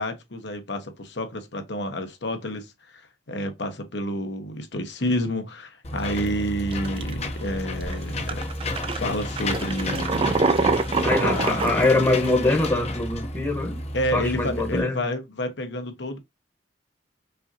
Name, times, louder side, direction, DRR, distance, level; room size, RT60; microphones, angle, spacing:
voice 1, 0.0-8.5 8.9-10.3 11.2-11.7 13.9-16.2, equal, 70° left, 1.1 m, -29 dB
Engine / Mechanisms, 5.8-14.8, left 2 dB, 35° left, 0.7 m, -31 dB
sound 1, 6.0-6.3 6.7-7.2 7.8-7.9 8.3-12.3, right 4 dB, 30° right, 0.4 m, -25 dB
voice 2, 11.0-13.8 14.1-15.0, left 2 dB, 20° left, 1.0 m, -23 dB
5.4 x 2.7 x 2.7 m
head